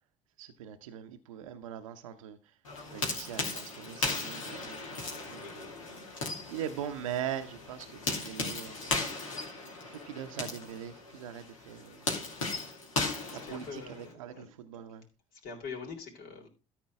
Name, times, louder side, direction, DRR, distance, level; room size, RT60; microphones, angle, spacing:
voice 1, 0.4-2.4 2.8-5.6 6.5-8.8 9.8-12.1 13.3-15.0, right 9 dB, 85° right, 0.8 m, -41 dB
sound 1, 2.6-14.1, left 3 dB, 90° left, 2.7 m, -37 dB
voice 2, 13.4-14.5 15.3-16.5, left 5 dB, 65° left, 4.1 m, -43 dB
13.5 x 4.5 x 5.8 m
hypercardioid pair, 55°, 17 cm